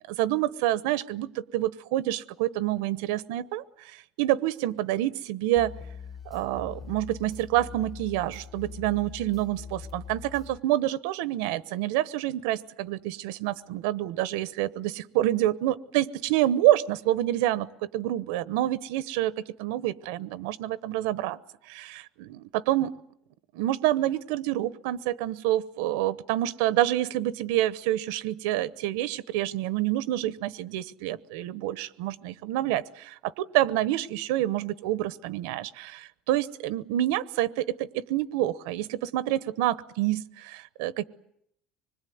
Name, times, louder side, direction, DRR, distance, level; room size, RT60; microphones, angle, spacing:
voice 1, 0.1-5.7 6.3-21.4 21.7-23.0 23.5-41.0, right 14 dB, 85° right, 17 dB, 1.0 m, -27 dB
sound 1, 5.6-10.6, left 6 dB, 20° left, 1.3 m, -42 dB
25.5 x 21.0 x 9.4 m, 0.74 s
cardioid pair, 145°, 0 cm